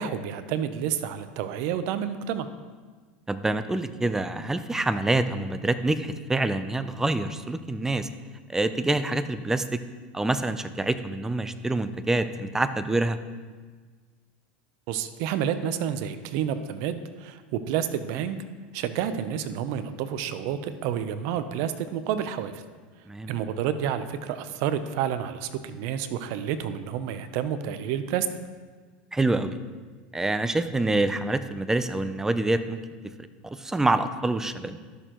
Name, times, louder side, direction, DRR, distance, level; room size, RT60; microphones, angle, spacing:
voice 1, 0.0-2.5 14.9-18.4 18.7-22.6 23.3-28.3, right 9 dB, 65° right, 11 dB, 0.7 m, -29 dB
voice 2, 3.3-8.1 8.5-9.8 10.1-13.2 23.1-23.3 29.1-29.6 30.1-32.8 33.4-34.8, right 2 dB, 10° right, 11 dB, 0.5 m, -26 dB
12.5 x 6.6 x 3.0 m, 1.5 s
hypercardioid pair, 100°, 5 cm